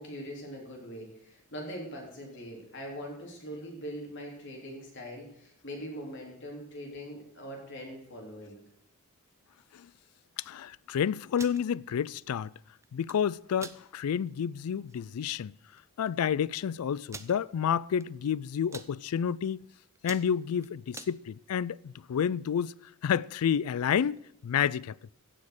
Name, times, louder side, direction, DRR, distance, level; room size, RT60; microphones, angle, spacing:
voice 1, 0.0-8.6, equal, 55° left, 3.5 m, -42 dB
voice 2, 10.4-12.5 12.9-15.6 16.0-19.7 20.0-22.7 23.0-24.2 24.4-25.0, left 8 dB, 80° left, 0.3 m, -30 dB
sound 1, 11.2-11.6 12.8-13.2 13.6-13.8 14.3-14.4 14.8-15.0 15.8-15.9 16.1-16.2 17.1-17.3 18.0-18.3 18.5-18.9 19.5-19.7 20.0-21.1, right 4 dB, 15° right, 0.4 m, -44 dB
15.5 x 6.5 x 6.5 m
head